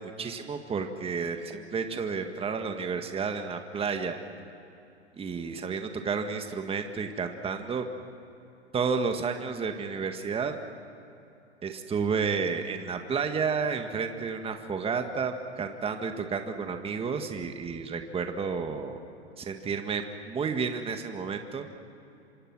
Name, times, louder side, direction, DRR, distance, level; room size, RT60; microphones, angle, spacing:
voice 1, 0.0-4.2 5.2-7.9 8.7-10.6 11.6-19.0 19.4-21.7, right 5 dB, 15° right, 6 dB, 1.8 m, -31 dB
27.0 x 26.0 x 6.2 m, 2.8 s
hypercardioid pair, 115°, 33 cm